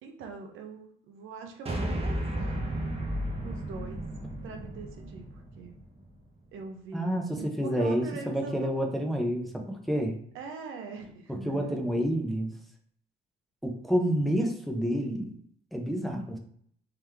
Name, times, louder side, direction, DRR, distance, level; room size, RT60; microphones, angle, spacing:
voice 1, 0.0-2.7 3.4-4.1 4.4-5.8 6.5-9.0 10.3-11.7, right 4 dB, 85° right, 3 dB, 0.7 m, -43 dB
sound 1, 1.7-6.1, right 1 dB, 30° right, 0.9 m, -34 dB
voice 2, 6.9-10.2 11.3-12.5 13.6-15.4 15.7-16.4, equal, ahead, 1 dB, 0.7 m, -29 dB
3.7 x 3.0 x 3.3 m, 0.63 s
cardioid pair, 90°, 20 cm